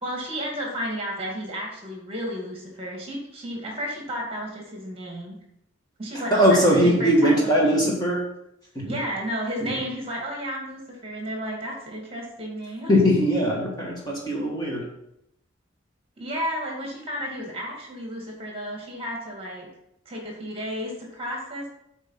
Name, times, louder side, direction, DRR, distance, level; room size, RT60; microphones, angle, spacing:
voice 1, 0.0-5.4 6.0-7.4 7.6-7.8 8.8-12.9 16.2-19.7 20.1-21.7, equal, 25° right, -1 dB, 2.1 m, -32 dB
voice 2, 6.3-8.2 8.7-9.0 9.6-9.7 12.9-14.8, equal, 20° left, -3 dB, 1.7 m, -20 dB
8.2 x 4.6 x 5.8 m, 0.79 s
head